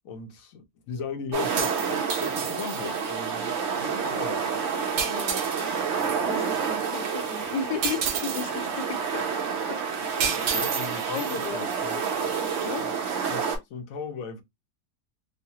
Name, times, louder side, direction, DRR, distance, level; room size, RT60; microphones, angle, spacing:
voice 1, 0.0-4.5 10.4-12.0 12.8-13.0 13.3-14.4, left 5 dB, 65° left, 0.9 m, -38 dB
sound 1, 1.3-13.6, right 6 dB, 55° right, 0.9 m, -29 dB
sound 2, 1.4-3.1 5.0-6.2 7.8-8.5 10.2-11.8, right 6 dB, 75° right, 1.2 m, -31 dB
voice 2, 5.0-5.5 5.8-9.3 9.7-10.2 10.5-10.7 11.1-12.3 12.7-12.8, left 5 dB, 85° left, 1.3 m, -35 dB
3.1 x 2.1 x 2.7 m
omnidirectional pair, 1.8 m